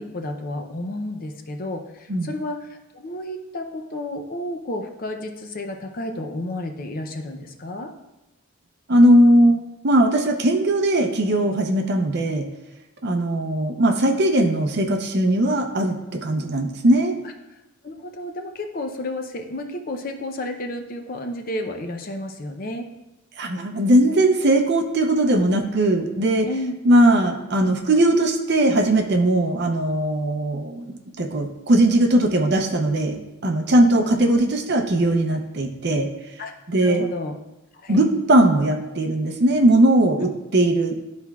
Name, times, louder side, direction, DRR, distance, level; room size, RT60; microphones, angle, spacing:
voice 1, 0.0-7.9 17.8-22.9 26.4-26.8 34.0-34.2 36.4-36.5 36.8-37.4 37.8-38.1 40.2-40.3, left 1 dB, 40° left, 5 dB, 0.5 m, -31 dB
voice 2, 8.9-12.5 13.0-17.2 23.4-26.5 26.8-36.1 36.7-37.1 37.9-41.1, right 1 dB, 50° right, 4 dB, 0.7 m, -19 dB
12.0 x 4.3 x 2.3 m, 0.98 s
head